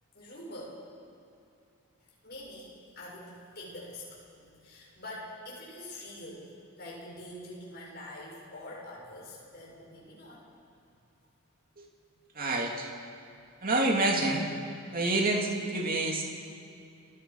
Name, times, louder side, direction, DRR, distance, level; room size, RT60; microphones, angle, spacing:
voice 1, 0.1-0.8 2.2-10.5, left 1 dB, 45° left, -4 dB, 7.2 m, -45 dB
voice 2, 12.3-12.9 13.6-14.5 14.9-16.2, right 2 dB, 40° right, 0 dB, 2.6 m, -27 dB
30.0 x 17.5 x 5.6 m, 2.6 s
head